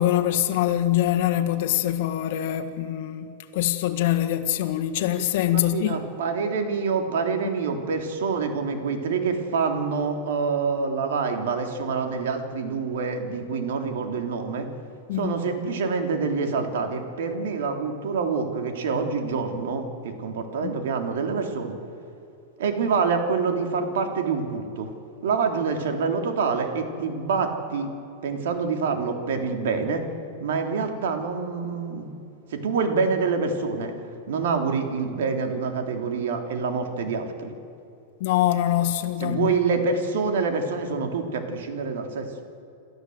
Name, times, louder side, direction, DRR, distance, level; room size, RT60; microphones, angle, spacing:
voice 1, 0.0-6.0 15.1-15.3 20.6-20.7 38.2-39.5, left 12 dB, 55° left, 1.7 m, -24 dB
voice 2, 5.5-14.7 15.1-21.8 22.6-24.9 25.2-27.9 28.2-30.0 30.4-32.1 32.5-34.0 34.3-37.5 39.2-42.3, right 5 dB, 75° right, 3.3 m, -26 dB
28.0 x 13.0 x 8.0 m
supercardioid pair, 155°, 0 cm